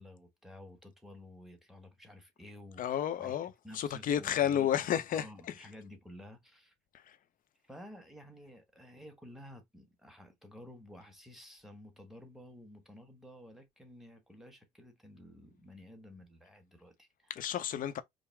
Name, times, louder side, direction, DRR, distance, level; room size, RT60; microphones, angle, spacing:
voice 1, 0.0-3.4 3.6-4.7 5.1-6.7 7.7-17.3, left 1 dB, ahead, 1.3 m, -52 dB
voice 2, 2.8-5.7 6.9-7.2 17.3-18.0, left 10 dB, 55° left, 0.7 m, -32 dB
4.8 x 2.1 x 3.4 m
cardioid pair, 110°, 17 cm